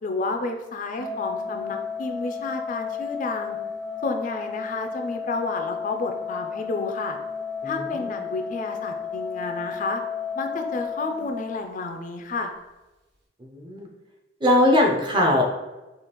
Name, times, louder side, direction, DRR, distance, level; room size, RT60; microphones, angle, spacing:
voice 1, 0.0-3.6 4.0-7.2 7.6-10.0 10.3-12.5, left 3 dB, 45° left, 5 dB, 0.4 m, -30 dB
Organ, 0.9-12.0, left 6 dB, 65° right, 1.0 m, -33 dB
voice 2, 7.6-8.2 13.5-13.9 14.4-15.4, left 1 dB, 25° right, 1 dB, 0.6 m, -21 dB
4.9 x 2.4 x 3.0 m, 1.1 s
head